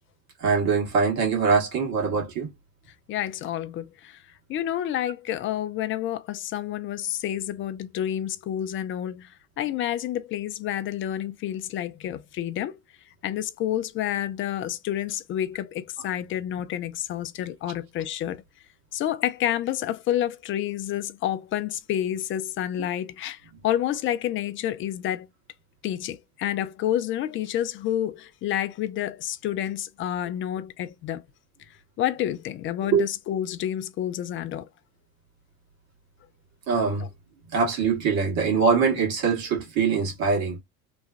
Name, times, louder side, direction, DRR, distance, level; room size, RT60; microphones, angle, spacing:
voice 1, 0.4-2.5 32.9-33.1 36.7-37.1 37.5-40.6, right 5 dB, 55° right, 1.6 m, -23 dB
voice 2, 3.1-4.2 4.5-12.7 13.2-18.4 18.9-25.3 25.8-31.2 32.0-34.7 37.0-37.1, left 11 dB, 30° left, 0.4 m, -29 dB
3.0 x 2.2 x 2.4 m
hypercardioid pair, 65°, 43 cm